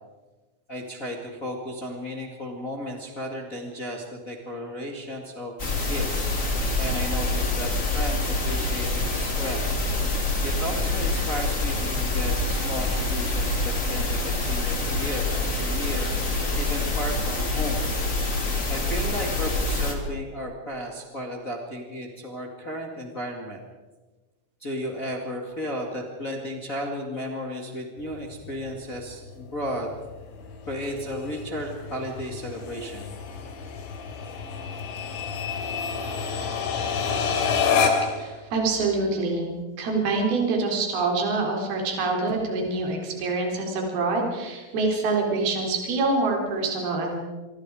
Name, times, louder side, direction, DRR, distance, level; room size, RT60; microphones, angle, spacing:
voice 1, 0.7-5.5 5.9-6.3 6.8-9.7 10.4-16.1 16.6-17.9 18.7-23.6 24.6-29.9 30.7-33.1, equal, 50° left, 1 dB, 1.0 m, -34 dB
sound 1, 5.6-19.9, left 2 dB, 25° left, 1.9 m, -26 dB
sound 2, 28.0-38.3, left 6 dB, 80° left, 5.3 m, -29 dB
voice 2, 38.2-39.5 39.8-47.2, right 3 dB, 50° right, 1 dB, 5.6 m, -25 dB
27.0 x 23.5 x 5.0 m, 1.2 s
omnidirectional pair, 5.9 m